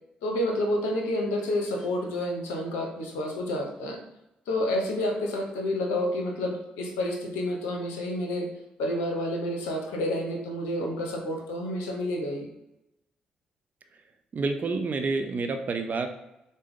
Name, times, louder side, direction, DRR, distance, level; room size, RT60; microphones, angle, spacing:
voice 1, 0.2-4.0 4.5-8.5 8.8-12.5, left 1 dB, 75° left, 2 dB, 0.8 m, -29 dB
voice 2, 14.3-16.1, right 3 dB, 45° right, 7 dB, 0.6 m, -28 dB
6.4 x 2.2 x 3.7 m, 0.89 s
hypercardioid pair, 40°, 4 cm